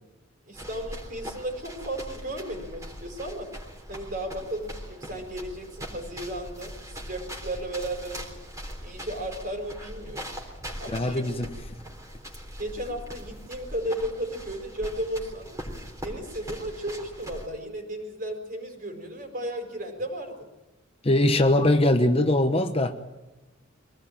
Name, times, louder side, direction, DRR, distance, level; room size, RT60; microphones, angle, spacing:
sound 1, 0.5-17.5, equal, 15° right, 3.5 m, -41 dB
voice 1, 0.5-3.5 3.9-8.3 8.8-10.3 10.8-11.4 12.6-15.6 16.0-20.5, right 1 dB, 40° right, 4.9 m, -34 dB
voice 2, 10.9-11.5 21.0-22.9, left 1 dB, 30° left, 1.0 m, -21 dB
24.5 x 18.5 x 8.9 m
head